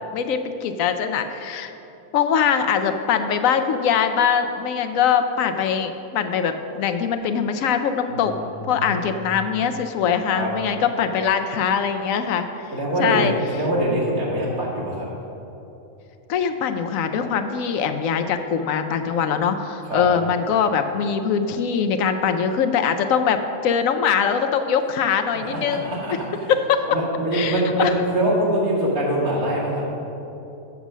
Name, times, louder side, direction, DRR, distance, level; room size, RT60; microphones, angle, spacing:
voice 1, 0.1-1.7 2.1-12.7 13.0-13.3 16.3-26.2 26.5-26.8 27.3-27.9, left 7 dB, 75° left, 8 dB, 0.9 m, -22 dB
voice 2, 8.9-9.2 10.3-10.5 12.7-15.1 19.8-20.0 25.4-26.1 26.9-29.8, right 1 dB, 80° right, -5 dB, 2.5 m, -23 dB
7.3 x 6.7 x 6.1 m, 2.9 s
omnidirectional pair, 1.5 m